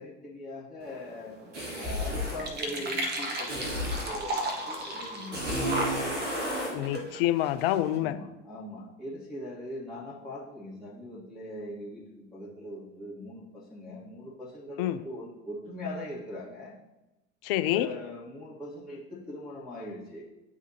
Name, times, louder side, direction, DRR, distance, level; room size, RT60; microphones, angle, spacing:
voice 1, 0.0-1.4 1.7-5.8 7.9-16.7 17.7-20.2, left 1 dB, ahead, -11 dB, 1.6 m, -41 dB
sound 1, 0.8-8.0, right 1 dB, 25° right, 1.1 m, -36 dB
sound 2, 1.5-2.5 3.5-4.2 5.3-6.8, equal, 75° right, 1.9 m, -31 dB
voice 2, 6.7-8.2 14.8-15.0 17.4-17.9, left 13 dB, 50° left, 12 dB, 0.5 m, -27 dB
10.5 x 3.6 x 2.8 m, 0.98 s
figure-of-eight pair, 75°, 37 cm